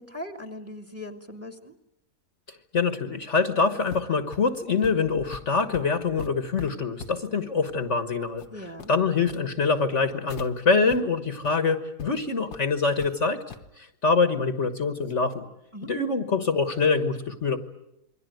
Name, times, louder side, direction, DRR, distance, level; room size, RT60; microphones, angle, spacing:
voice 1, 0.0-1.7 8.5-8.9 15.7-15.9, left 1 dB, 10° right, 7 dB, 1.9 m, -39 dB
voice 2, 2.7-8.4 8.9-13.4 13.8-15.5 15.9-17.6, left 4 dB, 50° left, 9 dB, 1.6 m, -25 dB
sound 1, 3.9-10.5 10.9-11.0 11.3-11.5 12.0-12.1 12.5-13.1 13.5-13.7, left 5 dB, 75° left, 1.8 m, -43 dB
28.0 x 23.0 x 9.2 m, 0.85 s
omnidirectional pair, 1.7 m